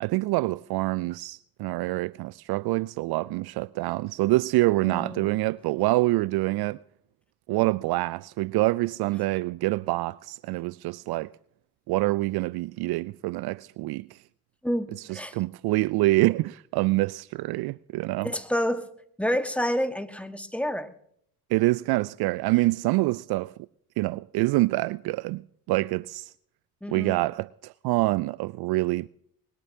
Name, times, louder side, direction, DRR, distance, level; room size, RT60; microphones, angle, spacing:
voice 1, 0.0-6.8 7.5-11.3 11.9-14.2 15.1-18.3 21.5-23.5 24.0-25.4 25.7-26.3 26.9-29.1, right 20 dB, 60° right, 0.5 m, -26 dB
voice 2, 4.8-5.3 14.6-15.4 18.2-18.9 19.2-20.9 26.8-27.2, equal, 5° left, 1.5 m, -29 dB
21.0 x 19.5 x 2.8 m
hypercardioid pair, 45°, 45 cm